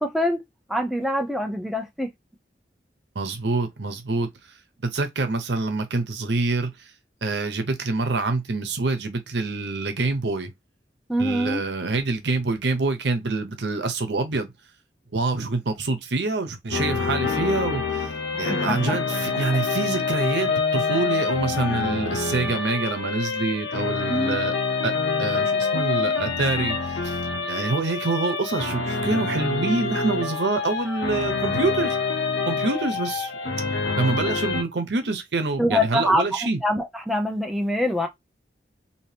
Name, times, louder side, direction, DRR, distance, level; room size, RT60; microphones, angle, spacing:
voice 1, 0.0-0.4 0.7-2.1 11.1-11.6 18.3-19.0 24.1-24.4 35.6-36.2 36.6-38.1, left 1 dB, ahead, 0.5 m, -24 dB
voice 2, 3.1-4.3 4.8-6.7 7.2-10.5 11.2-14.5 15.1-18.1 18.4-24.5 24.8-24.9 25.2-27.2 27.5-32.0 32.5-33.3 34.0-36.6, right 3 dB, 90° right, 0.8 m, -26 dB
sound 1, 16.7-34.6, left 4 dB, 80° left, 0.6 m, -26 dB
2.8 x 2.8 x 3.3 m
head